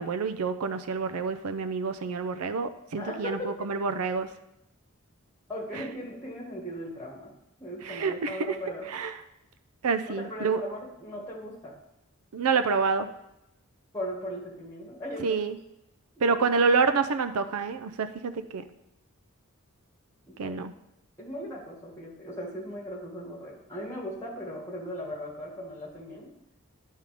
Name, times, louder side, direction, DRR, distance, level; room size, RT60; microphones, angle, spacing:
voice 1, 0.0-4.3 7.8-8.6 8.9-9.1 9.8-10.6 12.3-13.1 15.2-15.6 16.2-18.6 20.4-20.7, right 4 dB, 85° right, 9 dB, 0.5 m, -27 dB
voice 2, 3.0-3.7 5.5-7.3 7.6-8.9 10.2-11.7 13.9-15.4 16.2-16.4 20.3-20.6 21.2-26.3, equal, 15° left, -2 dB, 1.6 m, -38 dB
10.5 x 3.7 x 4.9 m, 0.84 s
head